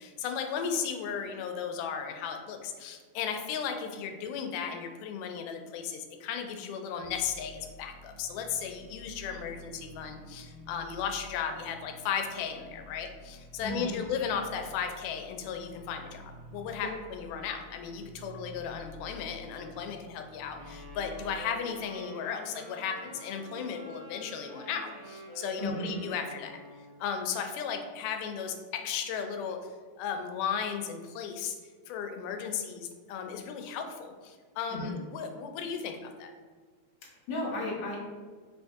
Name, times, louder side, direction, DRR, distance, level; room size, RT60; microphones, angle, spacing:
voice 1, 0.0-26.6 27.0-29.6 30.0-31.6 31.9-36.3, left 7 dB, 85° left, 5 dB, 2.1 m, -35 dB
sound 1, 7.0-21.4, left 1 dB, 90° right, 1.5 m, -50 dB
voice 2, 13.6-14.0 16.8-16.9 25.6-25.9 34.7-35.0 37.0-38.0, left 1 dB, 65° left, -5 dB, 1.1 m, -35 dB
sound 2, 20.5-27.1, right 2 dB, 65° right, 1.4 m, -47 dB
4.9 x 2.6 x 3.4 m, 1.5 s
omnidirectional pair, 3.6 m